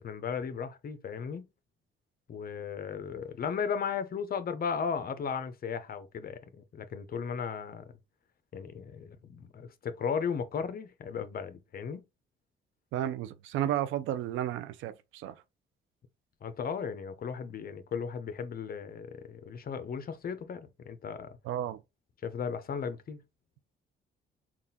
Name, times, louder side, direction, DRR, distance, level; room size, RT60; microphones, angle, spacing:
voice 1, 0.0-1.5 2.3-7.8 8.5-12.0 16.4-21.3 22.2-23.2, left 6 dB, 50° left, 0.7 m, -36 dB
voice 2, 12.9-15.3 21.4-21.8, right 11 dB, 90° right, 0.5 m, -32 dB
3.7 x 2.4 x 4.0 m
cardioid pair, 90°, 20 cm